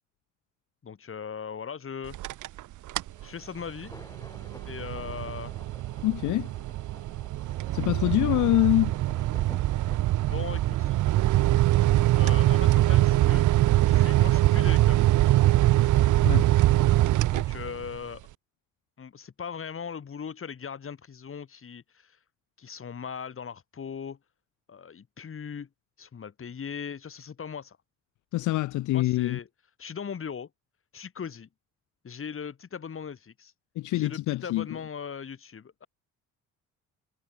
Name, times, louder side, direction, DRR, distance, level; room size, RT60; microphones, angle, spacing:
voice 1, 0.8-2.2 3.2-3.9 4.7-5.5 10.3-11.0 12.2-13.5 13.9-15.0 17.3-18.2 19.0-22.2 22.6-24.2 24.7-25.7 26.0-27.8 28.9-29.5 29.8-30.5 30.9-31.5 32.0-33.5 33.9-35.9, left 7 dB, 45° left, 5.6 m, -39 dB
sound 1, 2.1-2.6 2.9-3.2 3.7-18.0, right 15 dB, 75° right, 0.9 m, -23 dB
sound 2, 2.9-13.3, left 2 dB, 10° left, 4.7 m, -53 dB
voice 2, 6.0-6.5 7.7-8.9 15.5-15.6 16.2-16.5 28.3-29.4 33.8-34.7, left 17 dB, 75° left, 0.6 m, -25 dB
cardioid pair, 90°, 30 cm